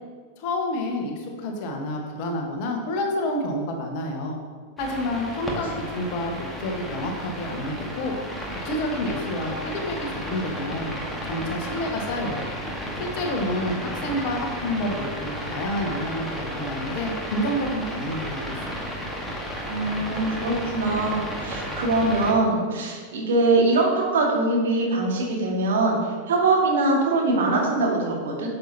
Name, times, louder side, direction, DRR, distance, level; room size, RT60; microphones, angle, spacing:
voice 1, 0.4-4.4 4.8-8.1 8.6-10.9 11.2-12.5 13.0-18.9, left 1 dB, 45° left, 2 dB, 1.4 m, -29 dB
sound 1, 4.8-22.3, equal, 5° left, 1.5 m, -33 dB
voice 2, 19.7-28.6, right 2 dB, 60° right, -2 dB, 1.9 m, -23 dB
9.8 x 6.8 x 2.9 m, 1.5 s
figure-of-eight pair, 90°, 0 cm